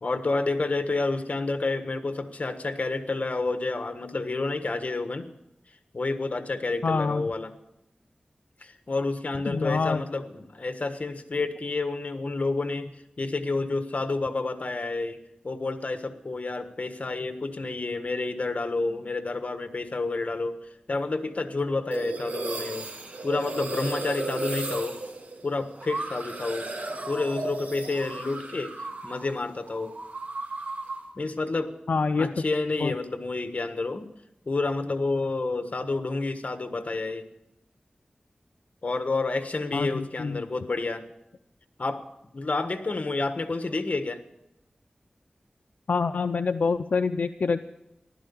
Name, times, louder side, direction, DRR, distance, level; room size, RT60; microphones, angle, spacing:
voice 1, 0.0-5.3 5.9-7.5 8.6-20.6 20.9-22.9 23.2-25.0 25.4-26.7 27.1-30.0 31.1-31.8 32.2-34.1 34.4-37.3 38.8-41.0 41.8-42.0 42.3-44.2, left 3 dB, 60° left, 8 dB, 1.4 m, -29 dB
voice 2, 6.8-7.3 9.5-10.0 31.9-32.3 32.8-32.9 39.7-40.4 45.9-47.7, left 4 dB, 85° left, 9 dB, 0.5 m, -26 dB
sound 1, 21.9-29.3 29.6-31.1, right 2 dB, 70° right, 2.4 m, -34 dB
15.0 x 12.5 x 7.0 m, 0.86 s
wide cardioid pair, 60°, 3 cm